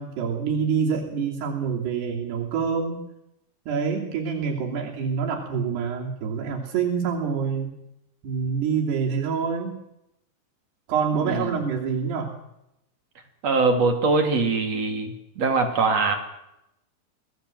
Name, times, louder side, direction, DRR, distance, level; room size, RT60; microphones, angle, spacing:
voice 1, 0.0-3.0 3.7-7.7 8.2-9.8 10.9-12.3, right 6 dB, 80° right, 0 dB, 5.0 m, -26 dB
voice 2, 13.4-16.2, right 3 dB, 45° right, 4 dB, 3.3 m, -22 dB
24.5 x 18.0 x 7.7 m, 0.85 s
omnidirectional pair, 4.7 m